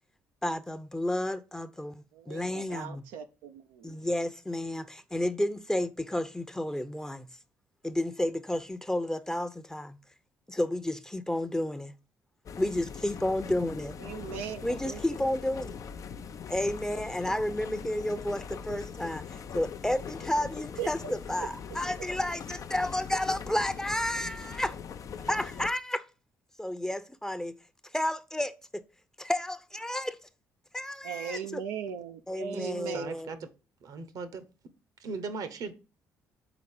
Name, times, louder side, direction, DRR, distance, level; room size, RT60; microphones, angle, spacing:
voice 1, 0.4-3.0 3.8-7.3 7.8-10.0 10.5-11.9 12.6-14.0 14.6-15.8 16.5-24.7 25.3-26.0 26.6-27.6 27.9-28.8 29.2-30.2 30.7-31.6 32.3-33.4, left 1 dB, 10° left, 0.6 m, -31 dB
voice 2, 2.1-3.9 14.0-15.0 20.8-21.1 31.0-33.1, right 8 dB, 85° right, 0.4 m, -38 dB
sound 1, 12.5-25.7, left 6 dB, 50° left, 0.5 m, -41 dB
voice 3, 32.5-33.5 33.8-34.4 35.0-35.7, right 4 dB, 65° right, 0.9 m, -38 dB
4.9 x 4.1 x 5.4 m
hypercardioid pair, 55°, 7 cm